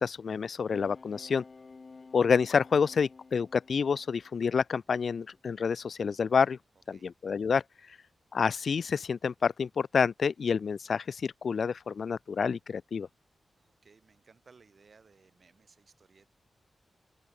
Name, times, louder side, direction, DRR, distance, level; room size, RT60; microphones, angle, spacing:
voice 1, 0.0-1.4 2.1-6.6 6.9-7.6 8.3-13.1, left 6 dB, 65° left, 0.3 m, -28 dB
sound 1, 0.7-4.5 5.0-5.3, left 4 dB, 45° left, 2.6 m, -52 dB
voice 2, 13.6-16.3, right 5 dB, 55° right, 7.3 m, -61 dB
open air
cardioid pair, 75°, 0 cm